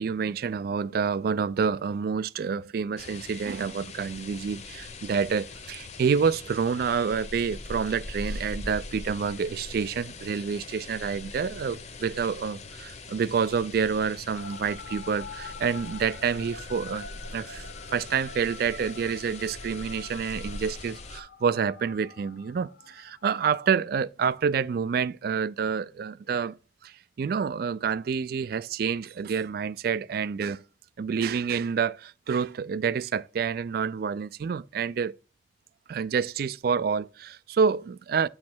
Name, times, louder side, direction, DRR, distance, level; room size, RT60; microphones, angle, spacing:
voice 1, 0.0-26.6 26.8-30.6 31.0-35.2 35.9-38.3, right 6 dB, 55° right, 0.3 m, -28 dB
sound 1, 3.0-21.2, left 3 dB, 40° left, 0.7 m, -41 dB
sound 2, 14.3-23.8, left 5 dB, 85° left, 0.5 m, -45 dB
8.4 x 3.2 x 6.0 m
head